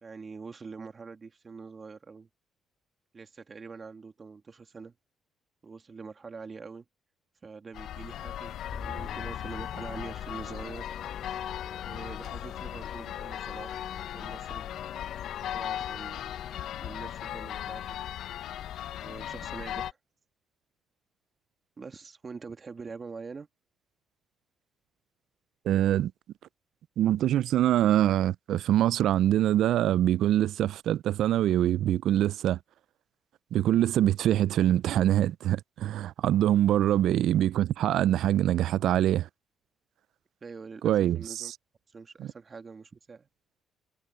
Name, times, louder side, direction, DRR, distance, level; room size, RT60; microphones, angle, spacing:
voice 1, 0.0-2.3 3.1-4.9 5.6-6.9 7.4-10.9 11.8-13.8 14.1-14.7 15.5-16.2 16.8-18.0 19.0-20.0 21.8-23.5 36.9-37.2 40.4-41.5 41.9-43.3, right 4 dB, 35° right, 2.3 m, -44 dB
sound 1, 7.7-19.9, left 11 dB, 75° left, 0.6 m, -37 dB
sound 2, 8.7-18.1, left 4 dB, 30° left, 2.5 m, -49 dB
voice 2, 25.7-26.1 27.0-32.6 33.5-39.3 40.8-41.5 42.2-42.3, right 12 dB, 80° right, 0.3 m, -24 dB
cardioid pair, 90°, 0 cm